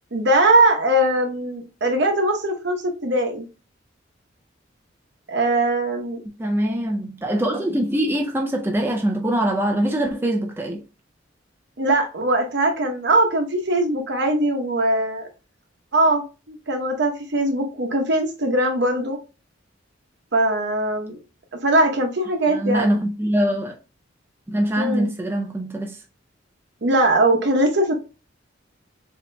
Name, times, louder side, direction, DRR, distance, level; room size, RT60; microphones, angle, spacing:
voice 1, 0.1-3.5 5.3-6.2 11.8-15.3 15.9-19.2 20.3-21.2 21.6-23.0 24.8-25.1 26.8-27.9, right 1 dB, 60° right, 0.9 m, -21 dB
voice 2, 6.2-10.8 22.5-23.8 24.5-26.0, right 1 dB, 10° right, 0.4 m, -23 dB
6.8 x 2.8 x 2.2 m
head